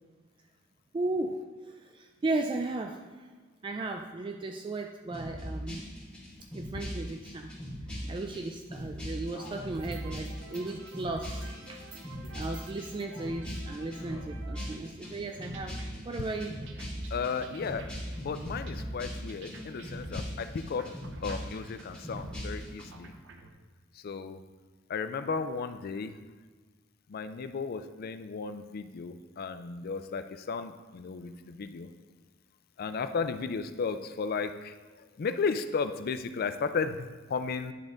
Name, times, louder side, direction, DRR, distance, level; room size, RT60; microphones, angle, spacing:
voice 1, 0.9-3.3 3.6-5.8 6.5-7.5 8.0-11.8 12.3-15.8 16.0-16.6, right 2 dB, 25° right, 4 dB, 0.3 m, -35 dB
sound 1, 5.1-22.9, equal, 5° left, 1.9 m, -40 dB
Male speech man speaking, 9.3-9.8 10.4-10.8 11.3-11.7 12.2-12.6 13.0-13.4 13.8-14.3, left 3 dB, 80° left, 0.8 m, -52 dB
sound 2, 9.7-23.5, right 3 dB, 65° right, 0.7 m, -51 dB
voice 2, 17.1-17.8 18.2-20.8 21.2-23.1 24.0-24.4 24.9-26.1 27.1-31.9 32.8-34.7 35.2-37.7, left 5 dB, 50° left, 10 dB, 0.4 m, -34 dB
10.0 x 3.8 x 3.6 m, 1.4 s
head